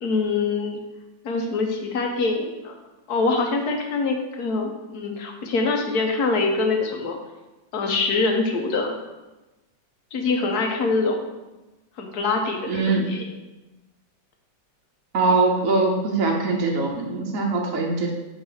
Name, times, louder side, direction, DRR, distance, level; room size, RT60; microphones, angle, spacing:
voice 1, 0.0-0.8 1.2-2.7 3.1-7.2 7.7-8.9 10.1-11.3 12.0-13.3, left 3 dB, 65° left, 2 dB, 1.3 m, -24 dB
voice 2, 12.7-13.1 15.1-18.1, right 3 dB, 55° right, 0 dB, 1.0 m, -22 dB
6.2 x 3.9 x 5.6 m, 1.1 s
omnidirectional pair, 2.0 m